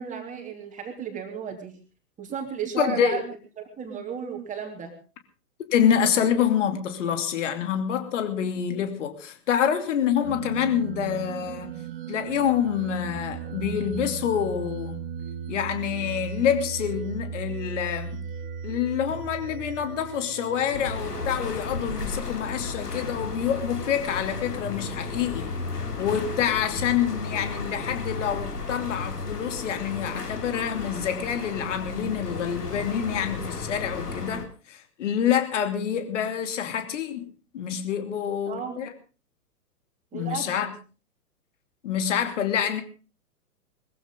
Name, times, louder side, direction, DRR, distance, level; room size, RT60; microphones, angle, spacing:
voice 1, 0.0-1.7 2.2-3.2 3.6-4.9 8.4-8.5 38.5-38.8 40.1-40.7, right 7 dB, 15° right, 3.1 m, -34 dB
voice 2, 2.8-3.2 5.7-11.8 12.1-15.0 15.5-18.2 18.6-25.5 26.0-37.2 37.5-38.9 40.1-40.7 41.8-42.8, left 9 dB, 50° left, 2.8 m, -27 dB
sound 1, 10.2-21.4, right 8 dB, 40° right, 1.6 m, -36 dB
sound 2, 20.7-34.5, left 3 dB, 80° left, 2.8 m, -34 dB
22.0 x 15.0 x 3.7 m
figure-of-eight pair, 115°, 46 cm